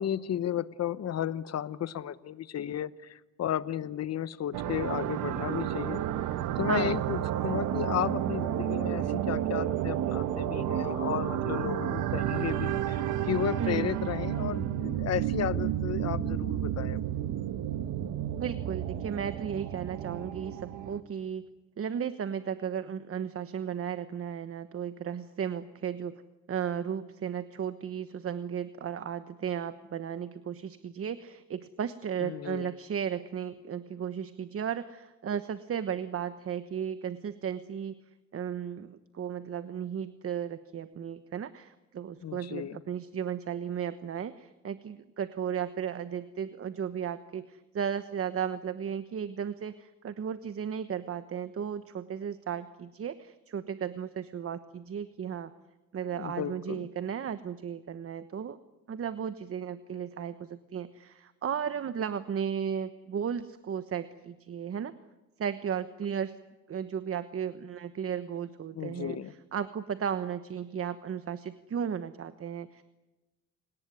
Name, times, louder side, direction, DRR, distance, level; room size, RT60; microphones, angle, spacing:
voice 1, 0.0-6.0 6.6-17.0 32.2-32.7 42.2-42.8 56.1-56.9 68.7-69.3, left 10 dB, 55° left, 16 dB, 1.0 m, -33 dB
sound 1, 4.5-21.0, right 11 dB, 90° right, 1.3 m, -31 dB
voice 2, 6.7-7.0 13.6-13.9 18.4-21.4 21.8-26.2 26.5-38.0 38.3-55.5 55.9-58.6 58.9-64.9 65.4-66.3 66.7-69.2 69.5-72.8, right 8 dB, 50° right, 12 dB, 1.2 m, -35 dB
28.5 x 19.0 x 9.9 m, 1.1 s
cardioid pair, 90°, 30 cm